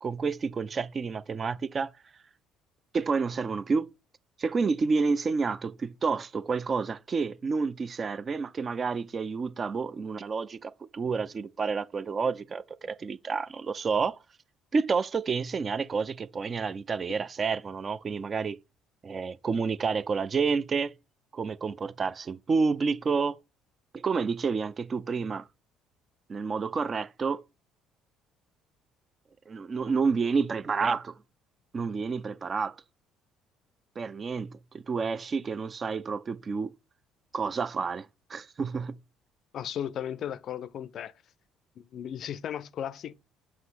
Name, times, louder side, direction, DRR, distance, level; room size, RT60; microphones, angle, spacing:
voice 1, 0.0-1.9 2.9-3.9 4.4-14.2 14.7-18.6 19.0-20.9 21.3-23.4 23.9-25.5 26.3-27.4 29.5-31.1 31.7-32.8 34.0-36.7 37.3-39.0, right 5 dB, 35° right, 0.4 m, -29 dB
voice 2, 39.5-41.1 41.8-43.1, left 9 dB, 50° left, 0.4 m, -35 dB
7.4 x 2.9 x 4.6 m
figure-of-eight pair, 50°, 0 cm